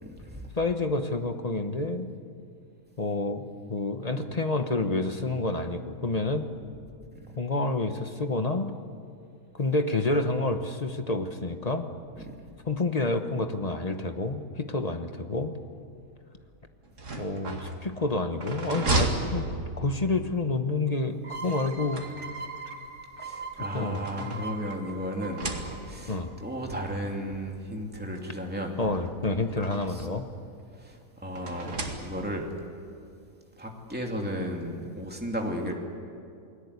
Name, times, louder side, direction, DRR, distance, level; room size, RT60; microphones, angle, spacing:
voice 1, 0.0-0.5 7.2-7.4 12.2-12.4 23.2-28.8 29.9-30.1 30.8-32.5 33.6-35.7, equal, 5° right, 0 dB, 2.7 m, -35 dB
voice 2, 0.6-2.1 3.0-3.4 3.7-6.5 7.4-8.7 9.5-11.9 12.7-15.6 17.2-19.5 19.8-22.0 23.7-24.4 26.1-26.3 28.8-30.3, left 2 dB, 30° left, 7 dB, 1.1 m, -29 dB
sound 1, 16.8-20.1 21.4-22.6 23.4-24.8 25.2-26.1 27.1-27.2 27.5-27.6 28.8-30.1 31.3-32.5, right 2 dB, 60° right, 2.6 m, -34 dB
sound 2, 21.2-26.7, right 4 dB, 90° right, 3.1 m, -40 dB
28.5 x 20.0 x 8.3 m, 2.4 s
omnidirectional pair, 1.5 m